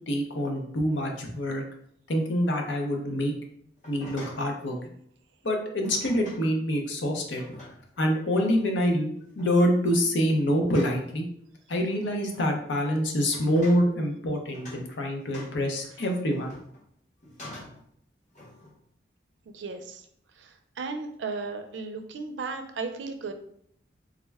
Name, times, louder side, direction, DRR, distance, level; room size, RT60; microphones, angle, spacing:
voice 1, 0.1-1.6 2.1-3.3 3.9-4.7 5.4-7.5 8.0-9.1 9.4-11.2 11.7-16.6, equal, 85° left, 2 dB, 0.7 m, -26 dB
sound 1, 3.8-4.5 5.8-6.4 7.1-8.0 8.4-8.7 9.2-9.5 10.7-11.1 11.9-12.6 13.3-13.9 14.5-14.9 15.3-16.8 17.2-17.8 18.3-18.7, left 1 dB, 40° left, 1.0 m, -45 dB
voice 2, 19.5-20.1 20.4-23.3, right 4 dB, 85° right, 7 dB, 0.4 m, -35 dB
3.5 x 2.1 x 3.4 m, 0.67 s
head